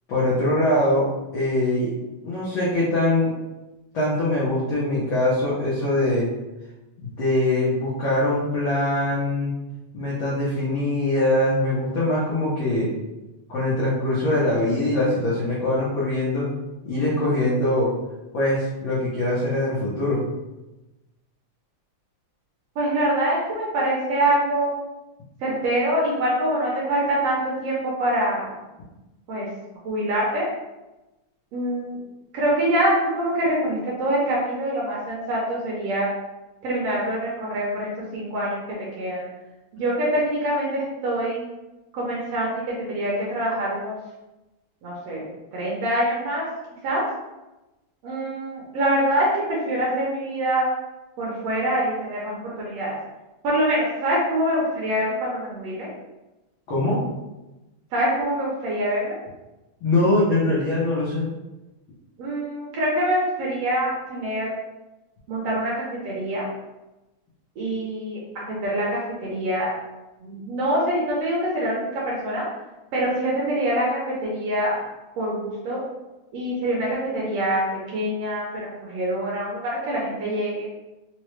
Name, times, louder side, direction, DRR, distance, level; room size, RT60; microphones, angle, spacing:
voice 1, 0.1-1.1 1.3-1.9 2.2-3.3 3.9-6.3 7.0-9.5 9.9-12.9 13.5-16.5 16.8-17.9 18.3-20.2 56.7-57.0 59.8-61.3, left 1 dB, 85° left, -8 dB, 1.1 m, -22 dB
voice 2, 22.7-24.7 25.4-28.5 29.3-29.5 29.8-30.5 31.5-32.0 32.3-36.1 36.6-38.6 39.0-39.2 39.7-41.5 41.9-44.0 44.8-45.2 45.5-46.4 46.8-47.0 48.0-50.7 51.2-53.0 53.4-55.9 57.9-59.2 62.2-64.5 65.3-66.5 67.6-69.7 70.2-72.4 72.9-74.8 75.2-75.8 76.3-77.6 77.9-80.7, right 1 dB, 70° right, -5 dB, 1.6 m, -25 dB
4.8 x 2.1 x 3.1 m, 1.0 s
omnidirectional pair, 3.3 m